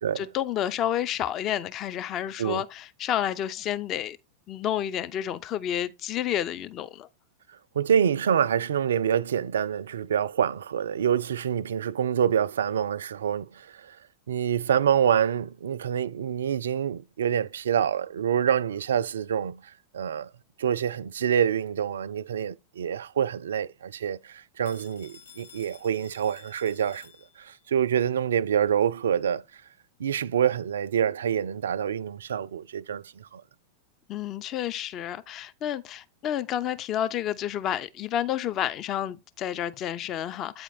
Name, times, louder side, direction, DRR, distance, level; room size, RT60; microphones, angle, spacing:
voice 1, 0.2-4.2 4.5-7.1 34.1-40.6, left 10 dB, 35° left, 0.4 m, -30 dB
voice 2, 7.8-14.0 14.3-19.6 19.9-20.3 20.6-27.1 27.4-29.4 30.0-33.4, right 8 dB, 65° right, 0.3 m, -26 dB
Telephone, 24.7-27.7, left 7 dB, 70° left, 0.9 m, -52 dB
8.6 x 4.3 x 4.0 m
figure-of-eight pair, 90°, 0 cm